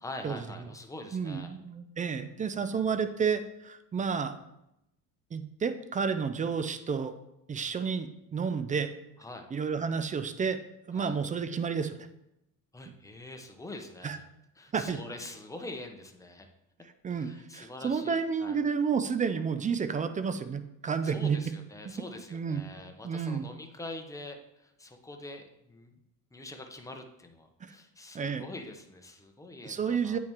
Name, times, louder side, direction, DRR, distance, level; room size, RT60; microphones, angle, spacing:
voice 1, 0.0-1.6 9.2-9.4 10.9-11.1 12.7-14.2 14.6-16.5 17.1-18.6 21.0-25.9 26.3-30.2, left 2 dB, 5° left, 4 dB, 0.9 m, -44 dB
voice 2, 1.1-4.4 5.3-7.1 7.5-8.9 9.5-10.6 10.9-12.0 14.0-14.2 14.7-15.0 17.0-21.4 22.3-22.6 23.0-23.5 27.7-27.8 28.1-28.5 29.6-30.2, right 6 dB, 20° right, 11 dB, 0.4 m, -31 dB
8.4 x 3.1 x 4.7 m, 0.84 s
hypercardioid pair, 65°, 46 cm